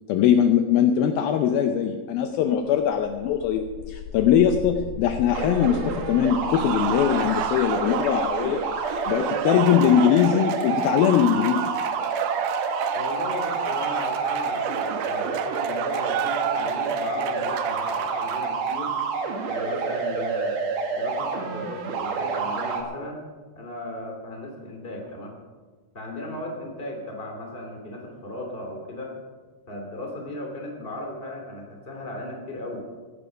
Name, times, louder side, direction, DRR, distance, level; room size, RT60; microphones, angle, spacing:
voice 1, 0.1-8.6 9.1-11.7, left 9 dB, 85° left, 6 dB, 2.1 m, -21 dB
sound 1, 2.8-12.5, left 5 dB, 65° left, 3.3 m, -41 dB
sound 2, 5.3-22.8, right 5 dB, 60° right, 2.5 m, -28 dB
Cheering / Applause, 6.5-19.1, right 10 dB, 80° right, 2.4 m, -33 dB
voice 2, 12.9-19.0 19.5-20.6 20.9-23.3 23.5-25.4 25.9-29.1 29.7-32.9, left 1 dB, 15° left, 1 dB, 1.9 m, -36 dB
16.0 x 11.5 x 5.2 m, 1.4 s
omnidirectional pair, 5.1 m